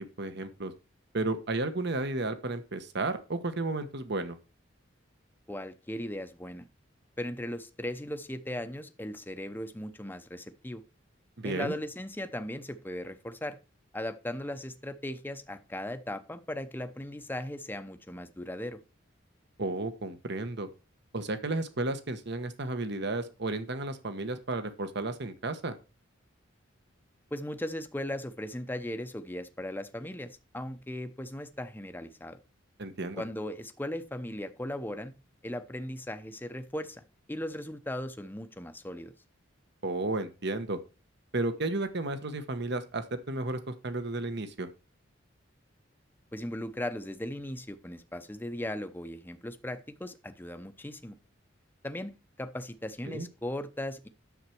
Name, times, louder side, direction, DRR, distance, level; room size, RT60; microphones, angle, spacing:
voice 1, 0.2-0.7 1.1-4.4 11.4-11.7 19.6-20.7 21.1-25.7 32.8-33.2 39.8-40.8 41.3-44.7 53.1-53.3, right 2 dB, 60° right, 1.2 m, -33 dB
voice 2, 5.5-6.7 7.2-10.8 11.4-13.6 13.9-18.8 27.3-32.4 33.2-35.1 35.4-37.0 37.3-39.1 46.3-51.2 51.8-54.1, left 1 dB, 10° left, 0.7 m, -38 dB
9.7 x 7.1 x 4.5 m
head